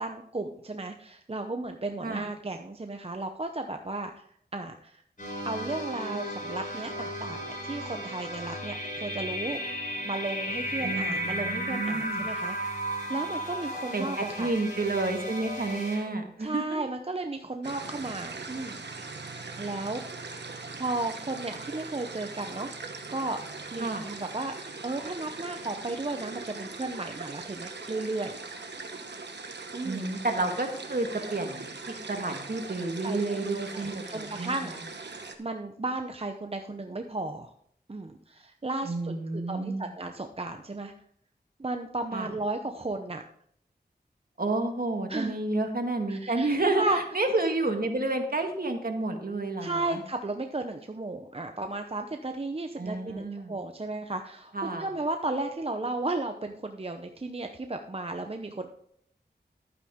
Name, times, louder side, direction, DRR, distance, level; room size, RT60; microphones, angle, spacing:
voice 1, 0.0-4.2 4.5-5.0 5.4-9.6 10.0-12.7 13.1-14.5 16.4-18.8 19.6-20.0 20.8-22.7 23.1-23.4 23.7-24.6 24.8-28.4 29.7-30.1 33.0-37.5 37.9-40.9 41.6-43.2 45.1-45.4 46.1-47.0 49.6-58.7, right 2 dB, 35° right, 5 dB, 0.7 m, -34 dB
sound 1, 5.2-16.1, equal, 50° left, 4.5 m, -34 dB
voice 2, 10.8-12.3 13.9-16.6 23.8-24.1 29.8-34.7 38.8-39.9 42.1-42.3 44.4-46.8 47.1-50.0 52.8-53.6 54.5-54.9, right 2 dB, 55° right, 4 dB, 1.7 m, -30 dB
sound 2, 17.6-35.4, right 3 dB, 80° right, 1.1 m, -41 dB
11.5 x 9.0 x 3.6 m, 0.66 s
wide cardioid pair, 70°, 18 cm